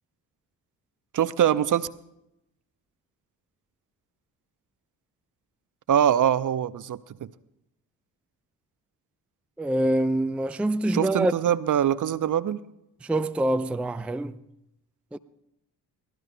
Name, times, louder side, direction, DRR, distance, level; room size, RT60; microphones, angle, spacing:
voice 1, 1.1-1.9 5.9-7.0 10.9-12.6, right 10 dB, 40° right, 0.7 m, -23 dB
voice 2, 9.6-11.3 13.0-14.4 15.1-15.2, right 1 dB, 5° right, 0.5 m, -25 dB
24.5 x 17.0 x 2.2 m
hypercardioid pair, 40°, 47 cm